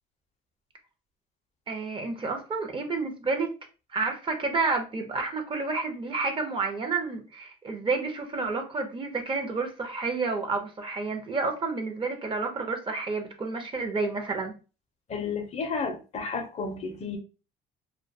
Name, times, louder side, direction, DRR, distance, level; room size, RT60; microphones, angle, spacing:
voice 1, 1.7-3.5 3.9-14.5, right 4 dB, 30° right, 0.6 m, -30 dB
voice 2, 15.1-17.2, left 4 dB, 40° left, 0.5 m, -32 dB
2.3 x 2.2 x 2.5 m
cardioid pair, 110°, 17 cm